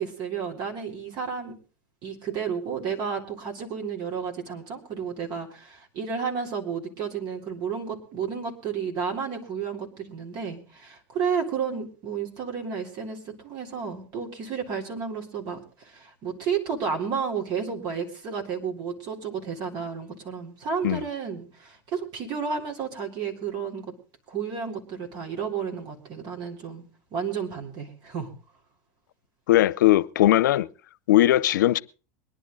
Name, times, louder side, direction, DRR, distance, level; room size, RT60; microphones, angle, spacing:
voice 1, 0.0-1.6 2.0-23.9 24.3-26.8 27.1-28.3, right 6 dB, 50° right, 3.5 m, -32 dB
voice 2, 29.5-30.7 31.1-31.8, left 14 dB, 85° left, 0.6 m, -19 dB
23.0 x 10.0 x 3.9 m
hypercardioid pair, 110°, 10 cm